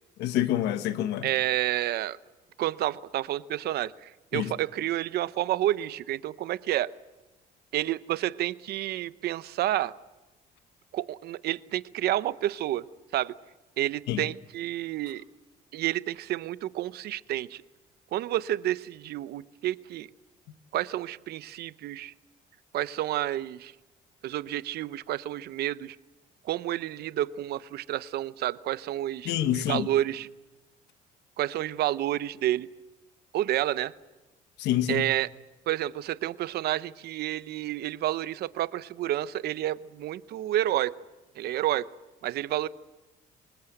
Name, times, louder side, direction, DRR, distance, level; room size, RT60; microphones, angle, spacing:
voice 1, 0.2-1.3 4.3-4.5 14.1-14.2 29.2-29.9 34.6-35.0, left 12 dB, 85° left, 1.3 m, -27 dB
voice 2, 1.2-2.2 2.6-6.9 7.7-9.9 10.9-12.9 13.1-13.3 13.8-15.2 15.7-17.6 18.1-20.1 20.7-22.1 22.7-23.7 24.2-26.0 26.4-30.3 31.4-32.7 33.3-33.9 34.9-35.3 35.7-41.0 41.4-41.9 42.2-42.7, right 13 dB, 70° right, 0.8 m, -30 dB
25.5 x 20.5 x 7.9 m
cardioid pair, 110°, 17 cm